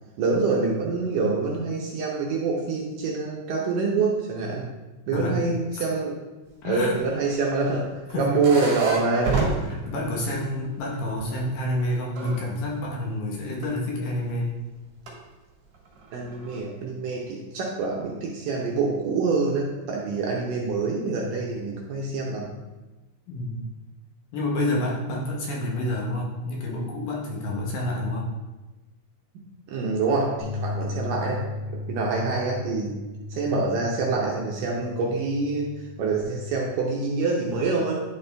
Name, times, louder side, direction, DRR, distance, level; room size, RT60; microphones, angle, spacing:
voice 1, 0.2-4.7 5.1-6.2 6.6-7.9 8.1-9.5 16.1-22.5 29.7-31.4 31.9-32.9 33.3-35.7 36.0-38.0, right 3 dB, 75° right, -2 dB, 2.1 m, -26 dB
voice 2, 5.1-5.5 6.6-7.0 8.1-8.7 9.7-14.5 23.3-23.6 24.3-28.3, left 1 dB, 70° left, -2 dB, 2.3 m, -28 dB
sound 1, 7.0-10.8 11.1-12.4 13.6-13.7 14.8-15.1 15.7-16.6, right 3 dB, 55° right, 2.7 m, -31 dB
sound 2, 30.4-36.7, left 3 dB, 90° left, 3.0 m, -36 dB
10.5 x 4.2 x 3.3 m, 1.1 s
omnidirectional pair, 4.5 m